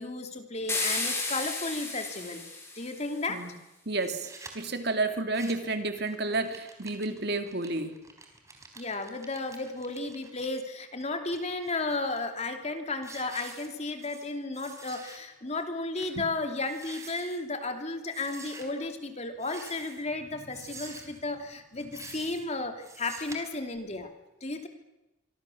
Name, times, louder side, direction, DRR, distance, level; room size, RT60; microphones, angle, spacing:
voice 1, 0.0-2.4 2.7-3.4 8.8-24.1 24.4-24.7, left 2 dB, 35° left, 6 dB, 2.8 m, -34 dB
sound 1, 0.7-3.1, left 2 dB, 15° left, 6.2 m, -33 dB
voice 2, 3.9-4.3 4.5-8.0, right 2 dB, 55° right, 6 dB, 3.0 m, -30 dB
sound 2, 4.0-4.5 5.1-5.7 6.1-10.5 11.0-12.2 12.6-12.8 13.0-14.3 14.5-15.2 15.5-15.6 16.0-16.1 16.6-17.4 18.1-18.7 19.4-20.1 20.5-21.2 21.8-22.5 22.8-23.4, right 3 dB, 15° right, 4.4 m, -47 dB
25.5 x 25.0 x 7.2 m, 1.0 s
head